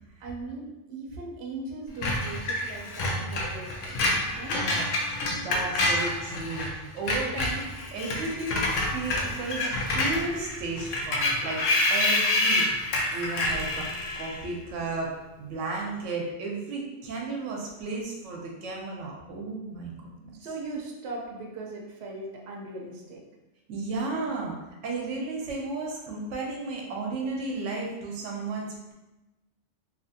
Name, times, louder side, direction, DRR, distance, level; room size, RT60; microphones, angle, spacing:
voice 1, 0.2-4.6 20.4-23.2, right 3 dB, 65° right, -1 dB, 0.8 m, -39 dB
Screech, 2.0-6.7 7.0-14.4, left 2 dB, 90° left, 1.0 m, -27 dB
voice 2, 4.5-4.9 5.3-9.6 9.9-11.6 11.9-12.7 13.1-15.1 15.4-20.3 23.7-24.6 24.8-28.9, right 3 dB, 85° right, -1 dB, 0.9 m, -34 dB
2.8 x 2.5 x 2.6 m, 1.0 s
omnidirectional pair, 1.3 m